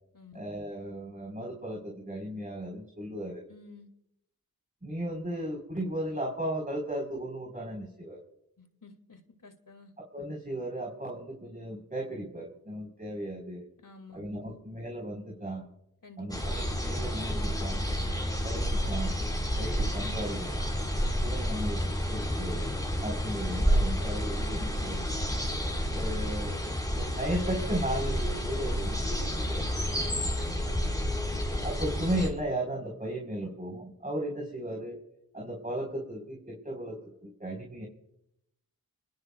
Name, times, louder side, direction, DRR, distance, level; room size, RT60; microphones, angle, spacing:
voice 1, 0.3-3.4 4.8-8.2 10.1-13.6 14.1-15.7 16.2-17.8 18.4-19.1 19.6-20.7 21.2-22.7 23.0-25.1 25.9-29.6 31.6-35.0 35.3-37.8, right 1 dB, 20° right, 0 dB, 4.4 m, -35 dB
voice 2, 3.5-3.9 8.6-9.9 13.8-14.6 16.0-16.3 29.9-31.3, left 3 dB, 60° left, 6 dB, 2.5 m, -51 dB
sound 1, 16.3-32.3, equal, 10° left, 4.5 m, -30 dB
27.0 x 20.5 x 2.4 m, 0.80 s
cardioid pair, 50°, 37 cm